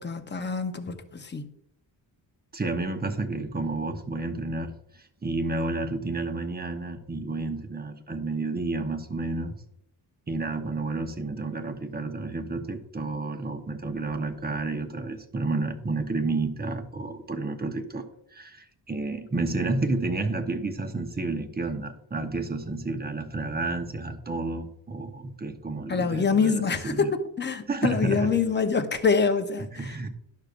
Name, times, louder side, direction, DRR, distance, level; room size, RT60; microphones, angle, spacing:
voice 1, 0.0-1.5 25.9-30.1, left 5 dB, 25° left, 0.8 m, -26 dB
voice 2, 2.5-9.5 10.3-27.1 27.7-28.3 29.7-30.1, right 3 dB, 20° right, 0.9 m, -31 dB
11.5 x 6.5 x 2.5 m
wide cardioid pair, 110°, 46 cm